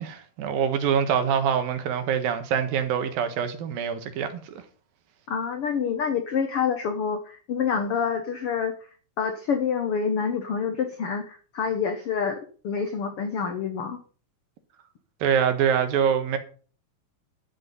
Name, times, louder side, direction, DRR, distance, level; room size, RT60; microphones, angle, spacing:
voice 1, 0.0-4.5 15.2-16.4, right 7 dB, 70° right, 3.0 m, -25 dB
voice 2, 5.3-8.7 9.2-12.4 12.6-14.0, left 6 dB, 85° left, 1.2 m, -27 dB
12.5 x 8.2 x 5.4 m
omnidirectional pair, 4.4 m